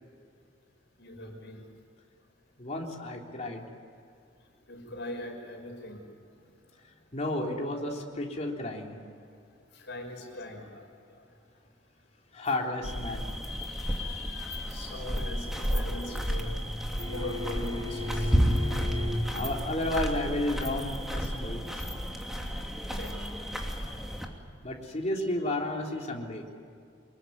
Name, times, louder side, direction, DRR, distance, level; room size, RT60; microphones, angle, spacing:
voice 1, 1.0-1.6 4.7-6.1 9.7-11.2 13.4-19.6 22.8-23.3 25.1-25.6 25.9-26.0, left 1 dB, 65° left, 2 dB, 5.8 m, -38 dB
voice 2, 2.6-3.6 7.1-9.0 12.3-13.2 19.3-21.9 24.6-26.5, left 1 dB, 35° left, 0 dB, 3.6 m, -32 dB
sound 1, 12.8-24.3, equal, ahead, 2.8 m, -32 dB
sound 2, 17.0-19.3 21.9-22.0, left 2 dB, 20° left, 5.6 m, -38 dB
25.5 x 22.5 x 9.6 m, 2.4 s
head